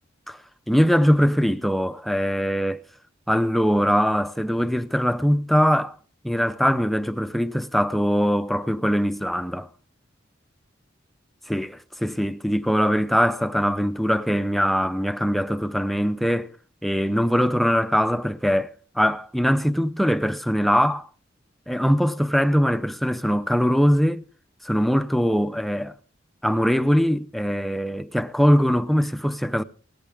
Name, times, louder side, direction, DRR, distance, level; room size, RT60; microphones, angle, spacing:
voice 1, 0.7-2.8 3.3-5.9 6.2-9.7 11.5-16.5 16.8-18.7 19.0-21.1 21.7-24.2 24.6-25.9 26.4-29.6, equal, ahead, 0.6 m, -22 dB
18.0 x 14.0 x 3.5 m
head